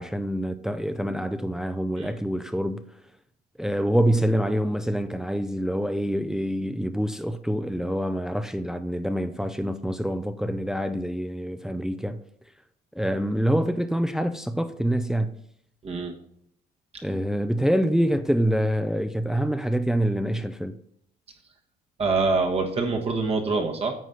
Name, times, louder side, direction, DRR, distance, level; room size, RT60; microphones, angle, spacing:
voice 1, 0.0-2.8 3.6-12.2 12.9-15.3 17.0-20.7, equal, 5° right, 0.5 m, -26 dB
voice 2, 22.0-23.9, right 3 dB, 35° right, 1.3 m, -25 dB
9.2 x 4.1 x 6.3 m
cardioid pair, 110°, 17 cm